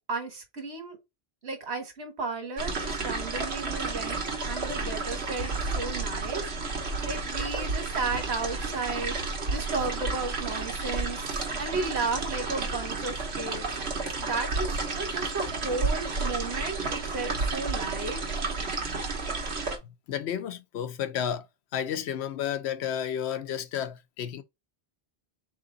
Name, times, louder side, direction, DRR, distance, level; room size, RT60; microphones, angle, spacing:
voice 1, 0.1-1.0 1.4-6.5 7.0-13.8 14.2-18.2, right 3 dB, 90° right, 1.7 m, -34 dB
sound 1, 2.6-19.8, right 3 dB, 75° right, 1.4 m, -31 dB
voice 2, 20.1-21.5 21.7-24.4, left 9 dB, 80° left, 0.9 m, -31 dB
3.8 x 3.3 x 3.7 m
omnidirectional pair, 1.1 m